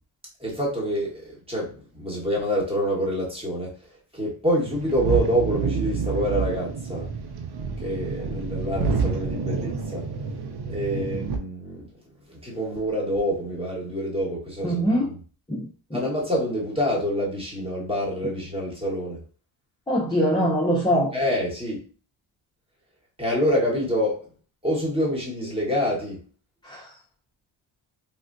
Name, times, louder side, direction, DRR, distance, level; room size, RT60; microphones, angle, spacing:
voice 1, 0.4-3.7 4.1-7.1 7.8-10.1 10.7-11.9 12.3-14.8 15.9-19.2 21.1-21.8 23.2-24.2 24.6-26.2, equal, 10° right, 1.3 m, -26 dB
sound 1, 4.6-11.4, right 5 dB, 55° right, 0.6 m, -28 dB
voice 2, 14.6-15.2 15.5-16.0 19.9-21.1 26.6-26.9, equal, 10° left, 0.7 m, -23 dB
3.4 x 2.4 x 2.6 m
cardioid pair, 95°, 48 cm